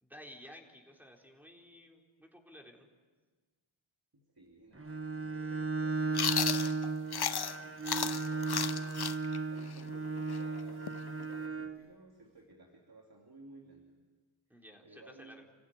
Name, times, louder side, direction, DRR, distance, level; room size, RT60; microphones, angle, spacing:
voice 1, 0.0-2.9 14.5-15.4, equal, 5° right, 0 dB, 4.0 m, -54 dB
voice 2, 4.1-7.4 7.9-9.0 9.5-14.0 14.5-15.4, right 2 dB, 45° right, 0 dB, 2.9 m, -56 dB
Bowed string instrument, 4.8-11.8, right 3 dB, 25° right, 1.3 m, -35 dB
Chewing mastication, 6.1-7.6 7.9-11.5, left 8 dB, 50° left, 0.7 m, -34 dB
29.0 x 16.0 x 9.5 m, 1.4 s
wide cardioid pair, 65°, 49 cm